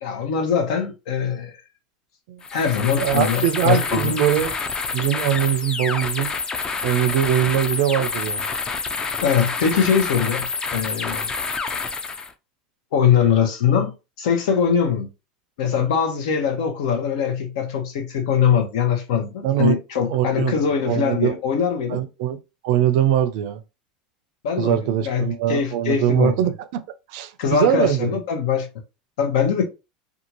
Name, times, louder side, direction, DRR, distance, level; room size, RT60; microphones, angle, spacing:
voice 1, 0.0-1.6 2.5-4.2 9.2-11.3 12.1-12.2 12.9-15.1 15.6-22.0 24.4-26.5 27.4-28.7 29.2-29.6, left 7 dB, 75° left, 0.8 m, -22 dB
sound 1, 2.4-12.3, left 4 dB, 20° left, 0.4 m, -28 dB
voice 2, 3.0-4.5 4.9-6.3 6.8-8.4 19.4-19.8 20.1-20.5 20.8-21.4 21.9-22.4 22.6-23.6 24.6-26.8 27.1-28.2, right 11 dB, 65° right, 0.5 m, -21 dB
2.7 x 2.4 x 2.9 m
supercardioid pair, 125°, 4 cm